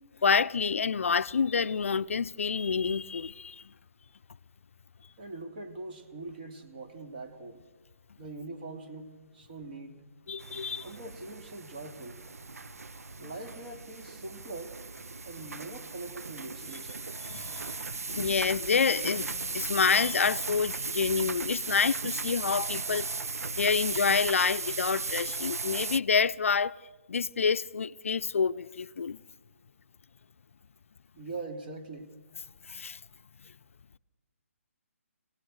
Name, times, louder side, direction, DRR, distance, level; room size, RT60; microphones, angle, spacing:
voice 1, 0.2-3.7 10.3-10.9 17.3-17.7 18.1-23.1 23.6-26.7 27.1-29.2 32.7-33.0, left 5 dB, 65° left, 0.6 m, -28 dB
voice 2, 5.2-7.6 8.2-10.0 10.8-12.2 13.2-14.7 15.3-17.0 31.1-32.1, right 2 dB, 40° right, 2.7 m, -42 dB
sound 1, 10.4-26.0, right 4 dB, 85° right, 0.6 m, -36 dB
25.5 x 18.5 x 6.4 m
figure-of-eight pair, 155°, 8 cm